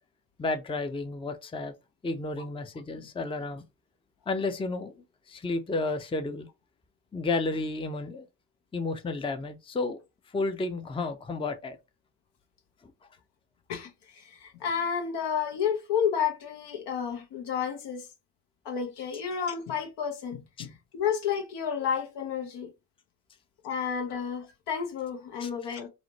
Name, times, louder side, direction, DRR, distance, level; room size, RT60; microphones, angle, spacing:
voice 1, 0.4-1.7 2.0-3.6 4.3-5.0 5.3-6.5 7.1-8.3 8.7-10.0 10.3-11.8 20.6-20.7 25.4-25.5, left 3 dB, 10° left, 0.5 m, -31 dB
voice 2, 13.7-18.1 18.6-22.7 23.6-25.9, left 7 dB, 70° left, 1.0 m, -31 dB
3.0 x 2.0 x 4.0 m
hypercardioid pair, 50°, 44 cm